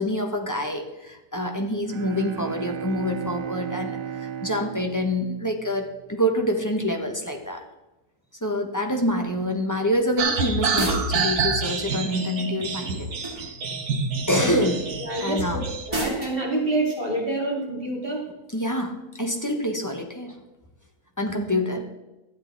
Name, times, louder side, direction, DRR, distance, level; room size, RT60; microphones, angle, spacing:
voice 1, 0.0-7.6 8.4-13.1 14.3-14.8 15.2-15.7 18.5-20.4 21.2-21.8, equal, 15° left, 2 dB, 0.8 m, -26 dB
Bowed string instrument, 1.9-6.2, right 9 dB, 90° right, 1.4 m, -35 dB
sound 1, 10.2-15.9, right 4 dB, 70° right, 1.6 m, -27 dB
sound 2, 10.7-11.4 13.2-13.7 15.9-16.4, right 1 dB, 15° right, 2.1 m, -29 dB
voice 2, 15.0-18.2, right 2 dB, 35° right, -2 dB, 2.6 m, -27 dB
12.5 x 8.2 x 4.0 m, 0.99 s
omnidirectional pair, 1.7 m